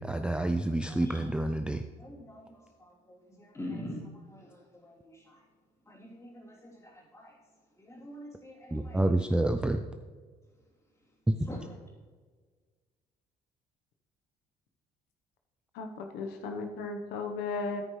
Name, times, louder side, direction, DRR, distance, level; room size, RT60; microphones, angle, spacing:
voice 1, 0.0-1.8 8.7-9.8 11.3-11.5, right 1 dB, 5° right, 6 dB, 0.4 m, -28 dB
voice 2, 0.8-1.1 2.0-2.5 2.8-5.4 5.9-7.3 7.8-9.0 11.5-11.6, left 1 dB, 15° left, -4 dB, 3.2 m, -45 dB
voice 3, 15.7-17.8, left 3 dB, 90° left, 5 dB, 1.0 m, -35 dB
9.9 x 9.1 x 3.2 m, 1.5 s
cardioid pair, 110°, 17 cm